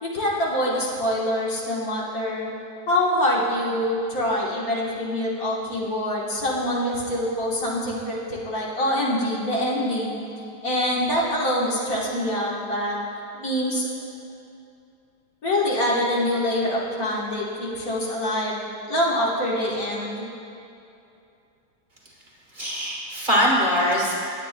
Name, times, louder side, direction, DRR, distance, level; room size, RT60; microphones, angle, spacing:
voice 1, 0.0-2.5 2.9-10.2 10.6-13.0 13.3-13.9 15.4-18.6 18.8-20.3, left 1 dB, 60° left, -4 dB, 1.8 m, -25 dB
voice 2, 22.5-24.1, equal, 30° right, -5 dB, 1.6 m, -22 dB
18.5 x 8.4 x 2.2 m, 2.6 s
omnidirectional pair, 1.8 m